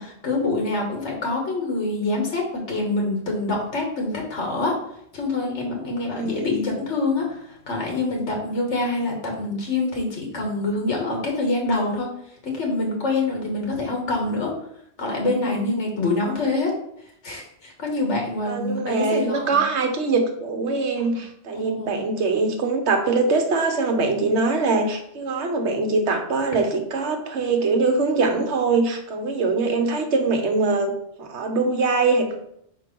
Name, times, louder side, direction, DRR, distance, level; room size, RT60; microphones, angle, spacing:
voice 1, 0.0-4.8 5.1-12.1 12.4-14.5 15.0-16.7 17.2-19.6 21.5-22.0, left 2 dB, 75° left, 0 dB, 1.8 m, -25 dB
voice 2, 6.1-6.7 16.2-16.4 18.4-30.9 31.2-32.4, right 3 dB, 70° right, 4 dB, 1.2 m, -23 dB
4.4 x 4.4 x 5.2 m, 0.72 s
omnidirectional pair, 1.2 m